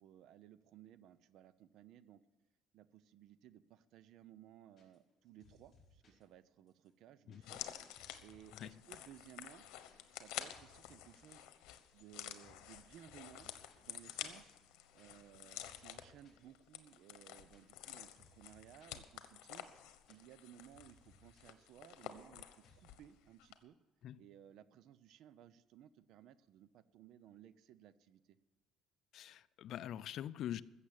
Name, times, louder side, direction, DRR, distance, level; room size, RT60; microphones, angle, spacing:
voice 1, 0.0-2.2 2.7-9.6 10.1-11.5 11.9-13.5 13.8-14.6 14.9-23.8 24.2-28.4, right 11 dB, 65° right, 0.6 m, -60 dB
sound 1, 4.8-5.1 5.4-6.2 6.7-8.8 9.1-9.2 9.4-9.9 10.2-11.2 11.5-12.1 12.4-12.7 13.1-13.9 14.2-14.3 14.5-15.4 15.6-16.4 16.9-19.0 19.3-19.4 19.6-20.5 20.7-21.4 21.7-22.3 22.6-23.0, left 3 dB, 35° left, 5.2 m, -68 dB
sound 2, 7.4-23.1 23.4-23.5, left 12 dB, 80° left, 1.1 m, -50 dB
voice 2, 29.1-30.6, left 11 dB, 55° left, 0.4 m, -44 dB
15.0 x 7.3 x 8.3 m
cardioid pair, 140°, 0 cm